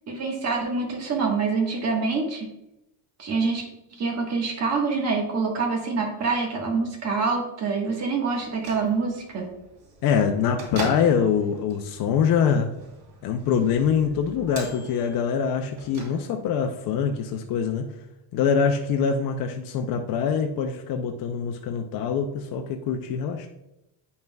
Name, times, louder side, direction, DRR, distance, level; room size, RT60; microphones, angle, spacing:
voice 1, 0.1-2.5 3.2-9.5, right 4 dB, 35° right, 0 dB, 1.3 m, -26 dB
Bell / Microwave oven, 8.4-16.6, right 2 dB, 70° right, 2.5 m, -41 dB
voice 2, 10.0-12.7 13.2-17.9 18.3-23.5, left 7 dB, 50° left, 4 dB, 0.5 m, -24 dB
9.1 x 5.5 x 2.3 m, 0.89 s
cardioid pair, 175°, 47 cm